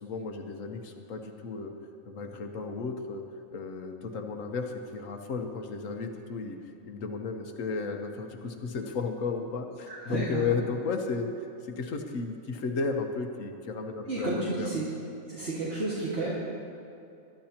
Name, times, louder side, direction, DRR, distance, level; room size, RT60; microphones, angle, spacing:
voice 1, 0.0-1.7 2.0-3.2 3.5-6.6 6.9-11.3 11.8-14.7, left 4 dB, 75° left, 4 dB, 1.4 m, -34 dB
voice 2, 9.9-10.5 14.0-14.8 15.3-16.3, right 2 dB, 50° right, -7 dB, 2.1 m, -31 dB
22.0 x 11.5 x 2.9 m, 2.6 s
omnidirectional pair, 1.4 m